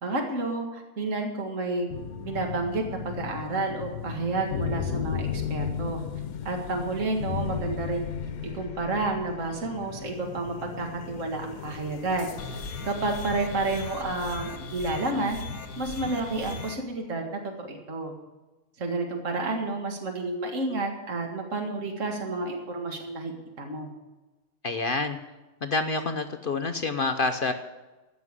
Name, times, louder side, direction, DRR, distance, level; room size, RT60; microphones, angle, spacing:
voice 1, 0.0-1.9 2.2-6.0 6.5-8.1 8.5-12.3 12.8-15.4 15.8-18.1 18.8-23.9, right 2 dB, 60° right, 2 dB, 2.2 m, -30 dB
sound 1, 1.9-14.5, left 7 dB, 90° left, 1.3 m, -35 dB
sound 2, 12.4-16.8, left 3 dB, 75° left, 2.1 m, -38 dB
voice 2, 24.6-25.2 25.6-27.5, left 3 dB, 45° left, 7 dB, 0.8 m, -27 dB
15.0 x 6.3 x 9.6 m, 1.1 s
omnidirectional pair, 1.5 m